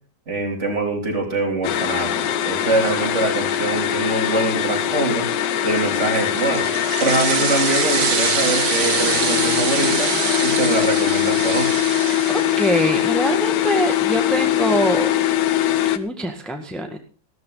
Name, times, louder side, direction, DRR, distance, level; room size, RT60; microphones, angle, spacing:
voice 1, 0.3-5.3 5.6-6.7 7.0-10.1 10.4-11.7, right 2 dB, 40° right, 2 dB, 3.7 m, -23 dB
sound 1, 1.6-16.0, left 11 dB, 80° left, 1.5 m, -22 dB
sound 2, 5.9-12.9, right 7 dB, 65° right, 1.8 m, -25 dB
voice 2, 12.3-15.1 15.9-17.0, equal, ahead, 4 dB, 1.5 m, -23 dB
15.5 x 13.5 x 4.0 m, 0.36 s
omnidirectional pair, 1.8 m